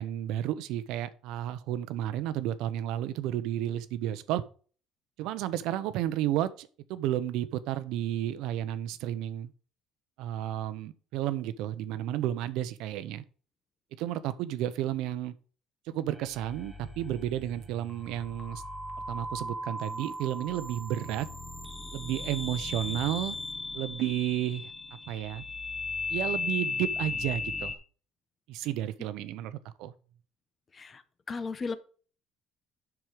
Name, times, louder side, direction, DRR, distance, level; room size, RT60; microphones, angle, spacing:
voice 1, 0.0-4.4 5.2-9.5 10.2-13.2 13.9-15.3 15.9-18.6 19.1-21.3 21.9-23.4 23.7-24.7 25.1-25.4 26.1-27.7 28.5-29.9, right 12 dB, 75° right, 0.7 m, -32 dB
sound 1, 16.1-27.8, left 3 dB, 10° left, 1.1 m, -37 dB
voice 2, 31.3-31.8, left 4 dB, 25° left, 0.8 m, -34 dB
7.7 x 6.2 x 5.0 m
cardioid pair, 150°, 0 cm